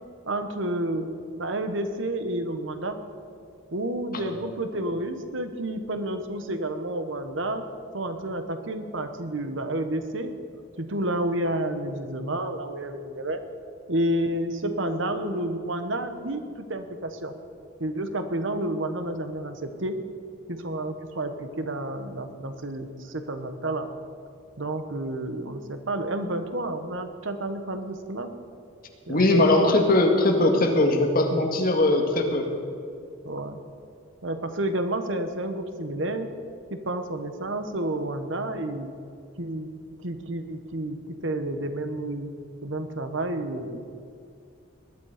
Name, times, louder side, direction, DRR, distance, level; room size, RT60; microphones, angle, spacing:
voice 1, 0.3-1.1 1.4-3.0 3.7-7.7 7.9-10.4 10.8-13.4 13.9-17.3 17.8-20.0 20.5-23.9 24.6-28.3 29.1-29.7 33.2-33.6 34.2-36.3 36.7-38.9 39.4-39.7 40.0-43.8, right 1 dB, 65° right, 8 dB, 1.2 m, -30 dB
voice 2, 29.1-32.5, left 2 dB, 45° left, 2 dB, 1.9 m, -20 dB
20.0 x 11.5 x 5.0 m, 2.4 s
head